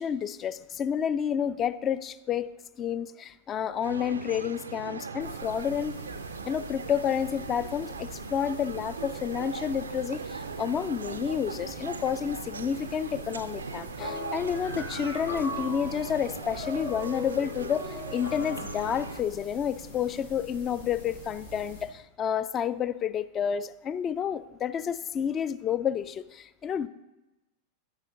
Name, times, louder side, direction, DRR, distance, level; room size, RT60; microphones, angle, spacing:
voice 1, 0.0-2.5 2.8-5.9 6.4-26.9, left 8 dB, 25° left, 15 dB, 0.3 m, -30 dB
sound 1, 3.8-19.2, right 5 dB, 75° right, 0.3 m, -39 dB
sound 2, 5.2-21.8, equal, 80° left, 2.9 m, -46 dB
sound 3, 14.0-19.2, left 3 dB, 50° left, 2.0 m, -39 dB
10.5 x 5.6 x 3.9 m, 1.0 s
figure-of-eight pair, 90°, 0 cm